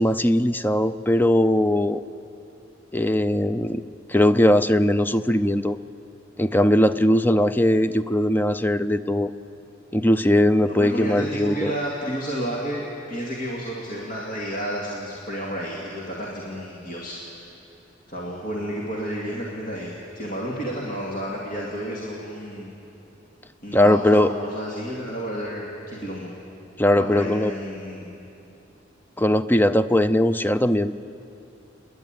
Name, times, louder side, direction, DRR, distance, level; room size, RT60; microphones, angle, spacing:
voice 1, 0.0-2.0 2.9-3.8 4.1-5.8 6.4-9.3 9.9-11.7 23.7-24.3 26.8-27.5 29.2-30.9, left 1 dB, 10° left, 12 dB, 0.4 m, -19 dB
voice 2, 10.6-17.5 18.1-22.7 23.6-26.3 27.0-28.1, equal, 50° left, -4 dB, 2.4 m, -31 dB
28.5 x 11.0 x 9.1 m, 2.8 s
head